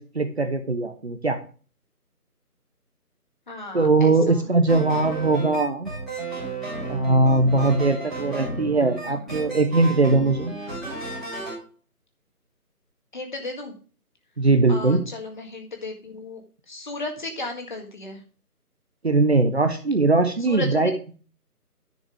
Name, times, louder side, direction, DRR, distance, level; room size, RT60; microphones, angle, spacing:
voice 1, 0.0-1.4 3.7-5.9 6.9-10.5 14.4-15.0 19.0-20.9, right 3 dB, 45° right, 6 dB, 1.1 m, -20 dB
voice 2, 3.5-4.5 9.0-9.4 13.1-13.7 14.7-16.4 16.7-18.2 20.4-21.1, left 2 dB, 30° left, 3 dB, 1.9 m, -35 dB
sound 1, 4.7-11.6, right 3 dB, ahead, 1.8 m, -33 dB
10.5 x 5.9 x 5.2 m, 0.38 s
figure-of-eight pair, 165°, 47 cm